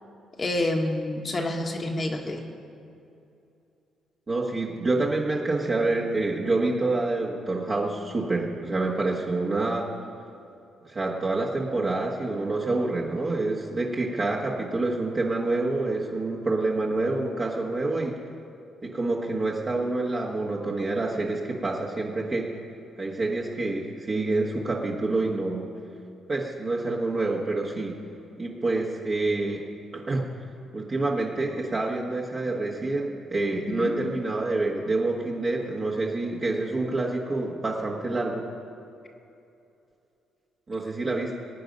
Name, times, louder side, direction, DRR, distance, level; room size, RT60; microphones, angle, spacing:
voice 1, 0.4-2.4 33.7-33.9, left 1 dB, 35° left, 2 dB, 1.6 m, -28 dB
voice 2, 4.3-9.9 10.9-18.1 18.8-22.5 23.0-25.7 26.3-28.0 28.4-29.6 29.9-30.3 30.7-38.4 40.7-41.3, right 2 dB, 35° right, -3 dB, 1.6 m, -27 dB
20.0 x 9.0 x 5.4 m, 2.7 s
cardioid pair, 90°, 0 cm